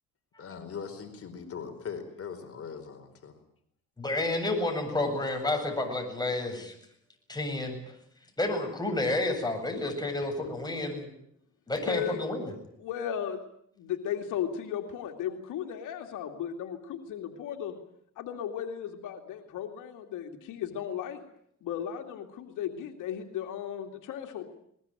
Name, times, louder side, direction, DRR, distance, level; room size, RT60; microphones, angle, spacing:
voice 1, 0.4-3.3, left 6 dB, 50° left, 6 dB, 4.5 m, -40 dB
voice 2, 4.0-6.7 7.3-7.8 8.4-11.1 11.7-12.5, left 2 dB, 15° left, 4 dB, 7.8 m, -30 dB
voice 3, 11.9-12.3 12.8-13.4 13.8-17.7 18.2-21.3 21.6-24.4, left 9 dB, 85° left, 4 dB, 2.5 m, -35 dB
21.5 x 21.0 x 9.1 m, 0.70 s
cardioid pair, 90°, 30 cm